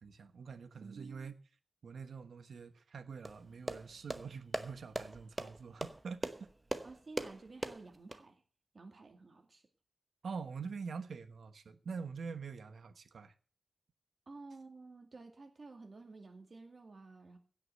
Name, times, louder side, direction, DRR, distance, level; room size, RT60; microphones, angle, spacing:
voice 1, 0.0-1.4 1.8-6.3 10.2-13.3, right 5 dB, 70° right, 1.2 m, -45 dB
sound 1, 3.2-8.2, right 2 dB, 15° right, 0.9 m, -41 dB
voice 2, 6.8-8.4 8.7-9.6 14.3-17.4, right 3 dB, 35° right, 2.4 m, -52 dB
16.5 x 6.0 x 7.8 m
wide cardioid pair, 170°, 0 cm